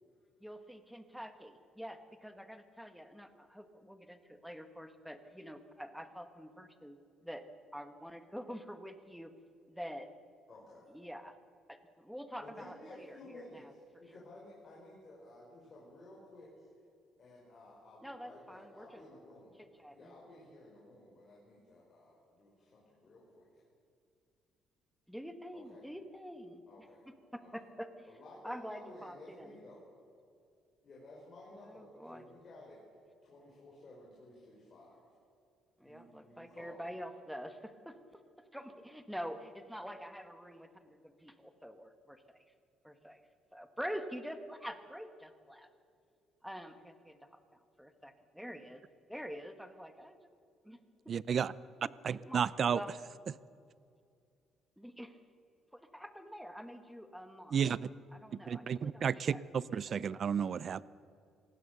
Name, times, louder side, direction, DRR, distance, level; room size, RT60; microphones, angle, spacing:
voice 1, 0.4-7.0 7.2-7.4 7.7-9.3 9.7-10.1 10.9-11.3 11.7-13.6 14.1-14.2 18.0-19.0 19.6-20.1 25.1-26.6 27.3-28.1 28.4-29.5 31.6-32.2 35.8-38.0 38.5-42.4 42.8-43.2 43.5-45.7 46.4-48.8 49.1-50.3 50.6-50.8 52.1-52.4 52.7-52.9 54.8-55.2 55.7-57.6 58.1-59.4 59.9-60.2, equal, ahead, 8 dB, 1.3 m, -46 dB
voice 2, 10.5-10.8 12.4-16.7 17.2-19.6 19.9-23.5 25.5-25.9 26.7-27.0 27.4-27.5 28.1-29.8 30.8-35.0 35.8-36.8, left 1 dB, 30° left, -5 dB, 5.2 m, -54 dB
voice 3, 51.1-51.5 52.0-52.8 57.5-57.9 58.5-60.8, right 7 dB, 35° right, 19 dB, 0.5 m, -32 dB
26.5 x 18.5 x 6.7 m, 2.4 s
cardioid pair, 170°, 0 cm